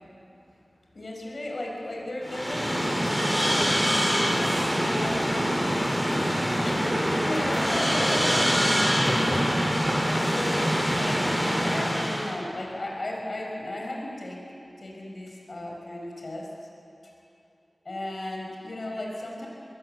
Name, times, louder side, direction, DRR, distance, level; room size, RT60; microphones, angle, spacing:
voice 1, 0.9-5.7 6.6-9.2 10.1-14.4 14.8-16.5 17.0-17.1 17.9-19.5, left 1 dB, 65° left, -1 dB, 5.3 m, -35 dB
sound 1, 2.2-12.4, equal, 5° right, 4.5 m, -24 dB
22.0 x 17.0 x 7.7 m, 2.8 s
cardioid pair, 40°, 0 cm